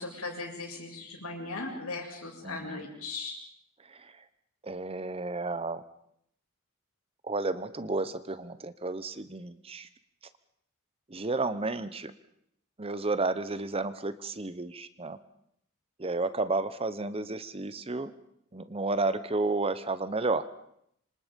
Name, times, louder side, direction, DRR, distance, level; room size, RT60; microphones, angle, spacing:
voice 1, 0.0-3.4, left 3 dB, 85° left, 0 dB, 7.5 m, -38 dB
voice 2, 2.4-2.8 4.6-5.8 7.3-9.9 11.1-12.1 12.8-15.2 16.0-18.1 18.5-20.4, right 3 dB, 25° right, 13 dB, 0.9 m, -32 dB
27.0 x 26.0 x 5.3 m, 0.72 s
head